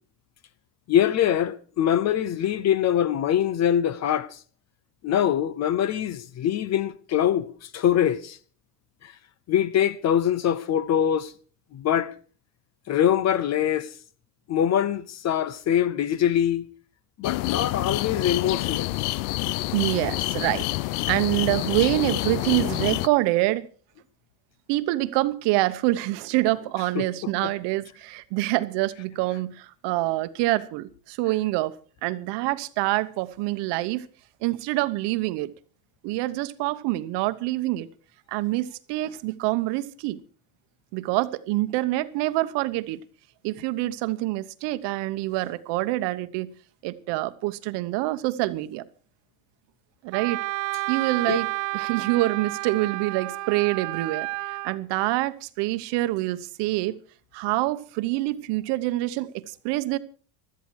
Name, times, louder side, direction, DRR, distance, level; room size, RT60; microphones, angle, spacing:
voice 1, 0.9-4.4 5.0-8.4 9.0-9.1 9.5-11.3 11.7-12.1 12.9-13.9 14.5-16.7 17.2-19.0 27.0-27.5 51.3-51.4, left 10 dB, 35° left, 0.8 m, -23 dB
sound 1, 17.2-23.1, left 20 dB, 80° left, 0.6 m, -28 dB
voice 2, 19.7-20.7 21.1-23.7 24.7-34.1 34.4-35.5 36.0-37.9 38.3-40.2 40.9-43.0 43.4-46.5 46.8-48.8 50.0-50.4 50.9-57.0 57.3-60.0, right 18 dB, 60° right, 1.1 m, -26 dB
Wind instrument woodwind instrument, 50.1-54.8, right 21 dB, 75° right, 0.7 m, -31 dB
17.0 x 12.5 x 4.7 m
cardioid pair, 140°, 46 cm